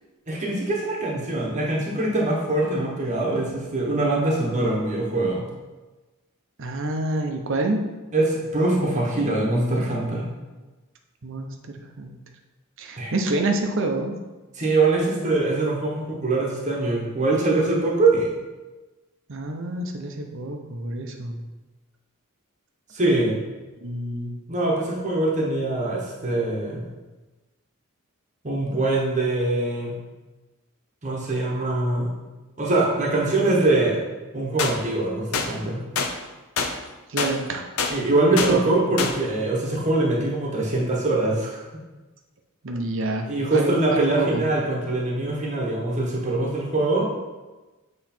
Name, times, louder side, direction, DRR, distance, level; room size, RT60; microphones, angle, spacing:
voice 1, 0.3-5.4 8.1-10.3 13.0-13.1 14.5-18.3 22.9-23.4 24.5-26.8 28.4-30.0 31.0-32.2 32.6-34.0 34.3-35.8 37.9-41.6 43.3-47.3, right 2 dB, 35° right, -3 dB, 1.1 m, -23 dB
voice 2, 6.6-7.9 11.2-11.5 12.0-12.2 12.8-14.1 19.3-21.4 23.8-24.4 37.1-37.6 38.3-38.9 42.6-44.4, right 2 dB, 60° right, 3 dB, 0.7 m, -27 dB
sound 1, 34.6-34.7 35.3-35.5 36.0-36.1 36.6-36.7 37.2-37.3 37.8-37.9 38.4-38.5 39.0-39.1, left 5 dB, 85° left, 0.6 m, -24 dB
8.0 x 3.1 x 4.3 m, 1.2 s
head